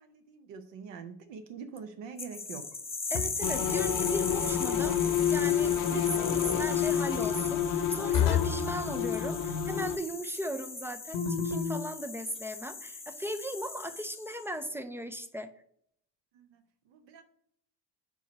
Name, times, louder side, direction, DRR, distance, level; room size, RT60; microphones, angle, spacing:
voice 1, 0.0-2.7 5.9-6.0 16.3-17.2, right 6 dB, 60° right, 8 dB, 0.8 m, -45 dB
sound 1, 2.2-14.5, left 4 dB, 10° left, 0.8 m, -39 dB
sound 2, 3.1-3.6 6.1-6.6 8.1-8.7 11.1-11.9, left 8 dB, 65° left, 0.9 m, -30 dB
voice 2, 3.1-5.0 5.3-15.5, equal, 5° right, 9 dB, 0.3 m, -37 dB
sound 3, 3.4-10.0, left 8 dB, 40° left, 0.6 m, -29 dB
4.6 x 4.6 x 5.3 m, 0.67 s
hypercardioid pair, 55°, 49 cm